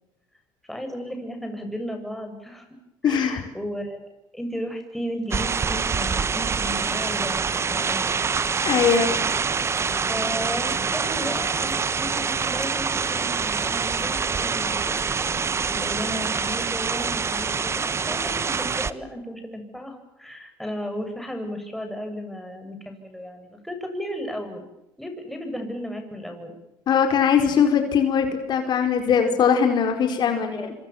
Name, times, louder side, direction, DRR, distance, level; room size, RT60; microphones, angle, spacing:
voice 1, 0.7-2.7 3.0-4.0 4.3-7.4 7.7-8.2 10.0-15.2 15.7-24.6 25.0-26.5 30.2-30.7, equal, ahead, 5 dB, 7.6 m, -34 dB
voice 2, 3.0-3.4 8.6-9.1 26.9-30.7, left 7 dB, 55° left, 6 dB, 4.8 m, -21 dB
sound 1, 5.3-18.9, right 5 dB, 30° right, 1.3 m, -25 dB
27.0 x 26.0 x 7.3 m, 0.89 s
supercardioid pair, 95°, 9 cm